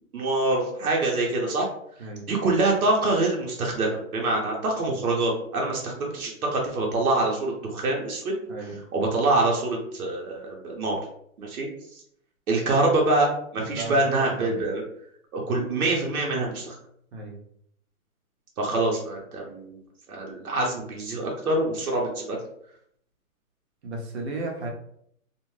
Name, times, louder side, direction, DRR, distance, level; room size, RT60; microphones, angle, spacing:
voice 1, 0.1-1.7 2.3-8.3 8.9-11.0 11.4-11.7 12.5-14.8 15.3-16.8 18.6-19.8 20.1-22.4, right 2 dB, 85° right, -1 dB, 1.0 m, -25 dB
voice 2, 13.6-14.6 17.1-17.4 23.8-24.7, right 3 dB, 50° right, 1 dB, 0.8 m, -35 dB
2.5 x 2.2 x 3.1 m, 0.68 s
hypercardioid pair, 150°, 43 cm